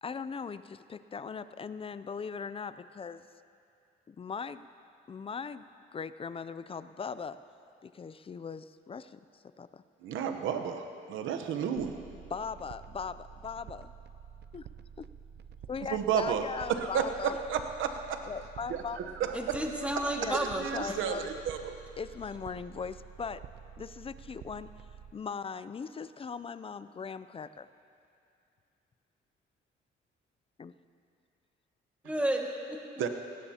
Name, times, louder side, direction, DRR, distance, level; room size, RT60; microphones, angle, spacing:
voice 1, 0.0-3.3 4.1-4.7 5.1-7.4 7.8-9.2 9.6-9.8 12.3-13.9 14.5-14.7 15.0-15.1 15.7-17.4 18.3-19.0 20.2-20.4 20.7-21.3 22.0-23.4 23.8-24.7 25.1-27.7 30.6-30.7, left 5 dB, 30° left, 14 dB, 0.4 m, -39 dB
voice 2, 10.0-12.0 15.8-16.4 16.8-18.2 18.7-19.4 19.8-21.7 33.0-33.1, right 8 dB, 85° right, 7 dB, 0.9 m, -32 dB
sound 1, 11.7-25.1, right 7 dB, 60° right, 0.5 m, -50 dB
voice 3, 19.3-20.6 32.0-32.8, right 1 dB, 5° right, 0 dB, 1.8 m, -31 dB
18.5 x 17.0 x 2.9 m, 2.5 s
cardioid pair, 90°, 20 cm